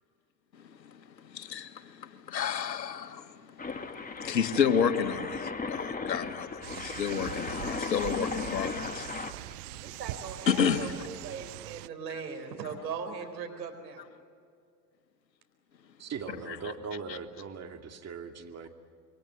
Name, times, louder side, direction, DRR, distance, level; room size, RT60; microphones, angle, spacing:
voice 1, 0.6-9.1 10.5-10.9 16.5-16.6 17.1-17.2, left 7 dB, 85° left, 10 dB, 1.6 m, -31 dB
sound 1, 3.6-9.3, left 4 dB, 15° left, 1.8 m, -36 dB
sound 2, 6.6-11.9, right 18 dB, 65° right, 0.8 m, -42 dB
voice 2, 9.8-14.0, right 6 dB, 80° right, 5 dB, 4.5 m, -39 dB
voice 3, 16.0-18.7, right 5 dB, 30° right, 4 dB, 2.5 m, -40 dB
28.0 x 23.0 x 7.8 m, 2.2 s
hypercardioid pair, 80°, 50 cm